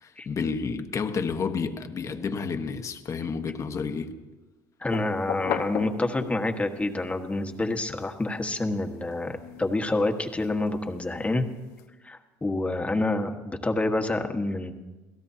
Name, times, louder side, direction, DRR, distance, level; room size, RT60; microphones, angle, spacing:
voice 1, 0.0-4.1, left 5 dB, 40° left, 7 dB, 1.3 m, -30 dB
voice 2, 4.8-11.5 12.0-14.7, left 2 dB, 15° left, 4 dB, 1.5 m, -28 dB
sound 1, 4.9-6.7 7.2-11.8, left 10 dB, 85° left, 1.3 m, -38 dB
29.0 x 17.0 x 2.9 m, 1.2 s
supercardioid pair, 90°, 8 cm